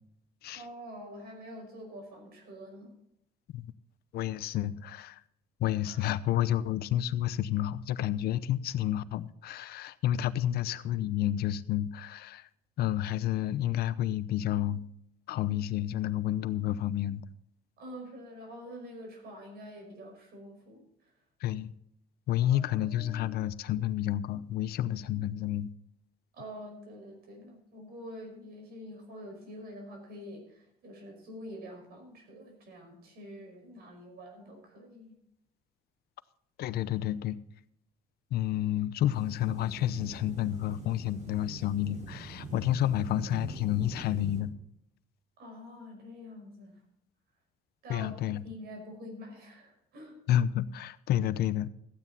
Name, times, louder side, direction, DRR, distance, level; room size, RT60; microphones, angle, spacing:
voice 1, 0.5-3.0 5.8-6.0 17.8-21.1 22.4-23.4 26.3-35.2 45.4-46.8 47.8-48.1 48.4-50.2, equal, 65° right, 5.5 m, -46 dB
voice 2, 4.1-5.2 5.6-12.5 12.8-14.8 15.3-17.2 21.4-21.7 22.3-25.7 36.6-37.4 38.3-44.5 47.9-48.4 50.3-51.7, left 12 dB, 70° left, 0.7 m, -30 dB
sound 1, 39.1-44.4, right 2 dB, 45° right, 3.9 m, -44 dB
14.5 x 9.1 x 4.1 m
cardioid pair, 110°, 17 cm